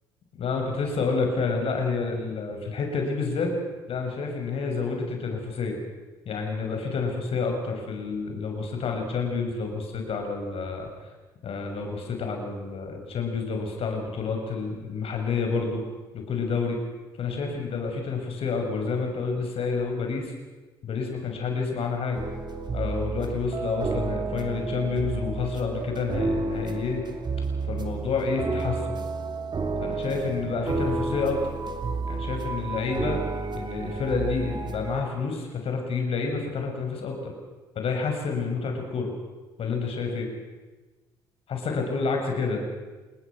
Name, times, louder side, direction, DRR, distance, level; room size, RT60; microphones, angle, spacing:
voice 1, 0.3-3.5 3.9-5.8 6.2-10.9 11.4-15.8 16.1-16.8 17.2-20.3 20.8-22.2 22.7-27.0 27.7-28.8 29.8-31.4 32.0-33.2 33.5-37.3 37.7-39.1 39.6-40.3 41.5-42.6, left 4 dB, 55° left, 3 dB, 6.3 m, -29 dB
sound 1, 22.1-35.0, right 3 dB, 40° right, 3.2 m, -31 dB
28.0 x 20.5 x 6.3 m, 1.2 s
hypercardioid pair, 55°, 12 cm